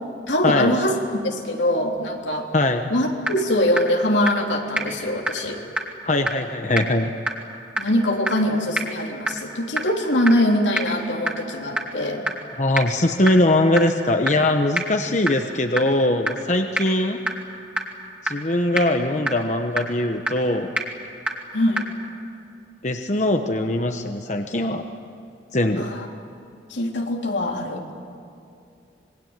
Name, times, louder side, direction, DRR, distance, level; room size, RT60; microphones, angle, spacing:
voice 1, 0.3-1.0 1.2-2.5 2.9-5.6 7.8-12.3 21.5-21.9 25.8-26.1 26.7-27.8, left 1 dB, 90° left, 1 dB, 3.5 m, -23 dB
voice 2, 2.5-2.9 6.0-7.1 12.6-17.2 18.2-20.7 22.8-24.9 25.5-25.9, left 1 dB, 40° left, 5 dB, 1.1 m, -21 dB
sound 1, 3.3-3.4 3.8-3.9 4.3-4.4 4.8-4.9 5.3-5.4 5.8-5.9 6.3-6.4 6.8-6.9 7.3-7.4 7.8-7.9 8.3-8.4 8.8-8.9 9.3-9.4 9.8-9.9 10.3-10.4 10.8-10.9 11.3-11.4 11.8-11.9 12.3-12.4 12.8-12.9 13.3-13.4 13.8-13.9 14.3-14.4 14.8-14.9 15.3-15.4 15.8-15.9 16.3-16.4 16.8-16.9 17.3-17.4 17.8-17.9 18.3-18.4 18.8-18.9 19.3-19.4 19.8-19.9 20.3-20.4 20.8-20.9 21.3-21.4 21.8-21.9, right 1 dB, 5° right, 2.6 m, -22 dB
26.5 x 22.0 x 9.1 m, 2.5 s
head